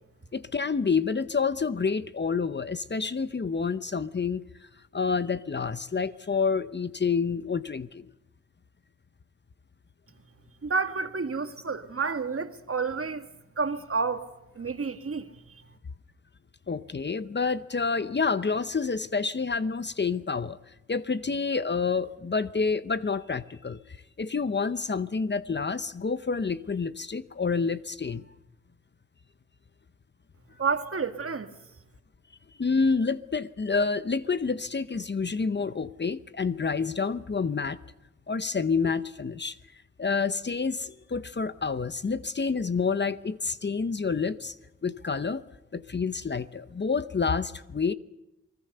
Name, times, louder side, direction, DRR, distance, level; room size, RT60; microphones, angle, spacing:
voice 1, 0.3-4.4 4.9-8.1 16.7-20.6 20.9-23.8 24.2-28.2 32.6-37.8 38.3-39.6 40.0-44.6 44.8-45.4 45.7-47.9, left 5 dB, 35° left, 0.8 m, -28 dB
voice 2, 10.6-13.3 13.6-14.3 14.6-15.3 30.6-31.5, right 5 dB, 45° right, 1.9 m, -30 dB
29.0 x 20.0 x 6.8 m
wide cardioid pair, 95°, 30 cm